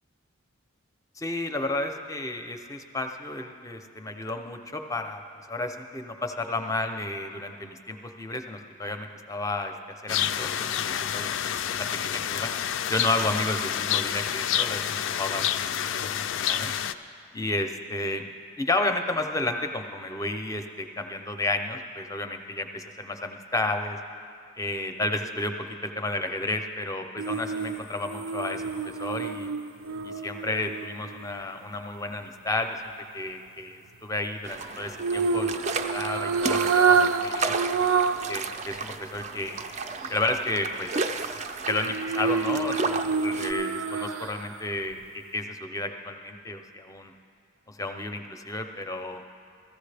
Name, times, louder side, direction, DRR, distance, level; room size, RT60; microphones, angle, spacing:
voice 1, 1.2-5.2 5.5-9.7 10.0-12.5 12.9-16.7 17.3-18.3 18.6-24.0 24.6-25.5 25.8-29.5 30.0-32.8 33.1-37.5 38.3-39.6 40.1-40.9 41.6-47.1 47.7-49.2, left 2 dB, 15° left, 6 dB, 0.5 m, -32 dB
sound 1, 10.1-16.9, left 9 dB, 65° left, 0.3 m, -28 dB
sound 2, 27.2-31.4 35.0-38.4 38.7-38.8 41.7-44.6 44.9-45.0, right 5 dB, 90° right, 0.5 m, -27 dB
sound 3, 34.4-43.5, right 4 dB, 35° right, 0.4 m, -33 dB
15.0 x 14.5 x 3.3 m, 2.3 s
head